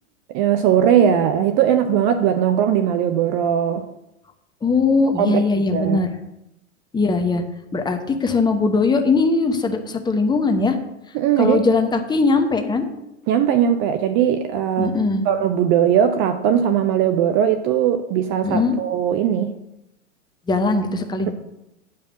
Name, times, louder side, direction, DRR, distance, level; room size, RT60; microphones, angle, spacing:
voice 1, 0.3-3.8 5.2-5.4 5.7-6.1 11.1-11.6 13.3-14.9 15.3-19.5 21.3-21.4, right 9 dB, 30° right, 9 dB, 0.6 m, -19 dB
voice 2, 4.6-6.1 6.9-7.4 7.7-10.8 11.4-12.8 14.8-15.2 18.4-18.8 20.5-21.3, left 3 dB, 10° left, 5 dB, 0.9 m, -20 dB
9.0 x 5.0 x 7.2 m, 0.88 s
figure-of-eight pair, 95°, 37 cm